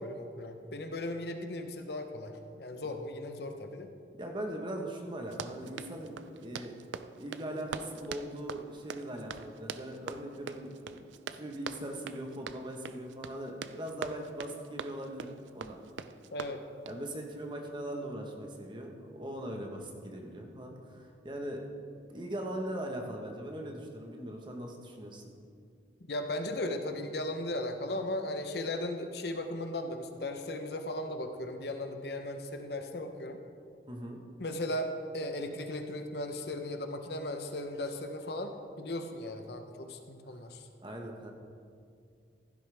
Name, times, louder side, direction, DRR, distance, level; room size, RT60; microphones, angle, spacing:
voice 1, 0.0-3.9 16.3-16.6 26.1-33.4 34.4-40.7, left 1 dB, 60° left, 5 dB, 0.9 m, -37 dB
voice 2, 4.2-6.7 7.1-11.0 11.3-15.3 15.5-15.8 16.8-21.6 22.1-25.2 33.9-34.2 40.8-41.3, right 1 dB, 25° right, 1 dB, 1.2 m, -40 dB
Run, 5.2-17.1, right 6 dB, 85° right, 0.4 m, -43 dB
15.5 x 12.0 x 3.5 m, 2.3 s
head